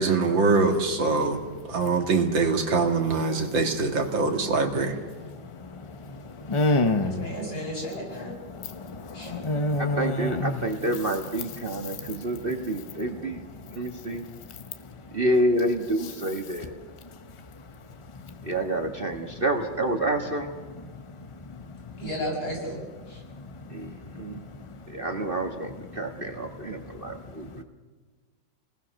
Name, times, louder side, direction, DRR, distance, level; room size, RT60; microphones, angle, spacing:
voice 1, 0.0-1.4 1.7-4.9, right 4 dB, 85° right, 2.8 m, -23 dB
voice 2, 6.5-7.2 9.3-10.6, left 2 dB, 30° left, 0.5 m, -24 dB
voice 3, 7.2-8.4 9.1-9.3 22.0-22.8 23.1-23.2, equal, 55° left, 8.2 m, -33 dB
voice 4, 9.8-13.4 13.7-14.3 15.1-16.7 18.4-20.5 23.7-24.4 24.9-27.6, right 1 dB, 30° right, 1.6 m, -28 dB
29.5 x 19.5 x 6.4 m
omnidirectional pair, 2.0 m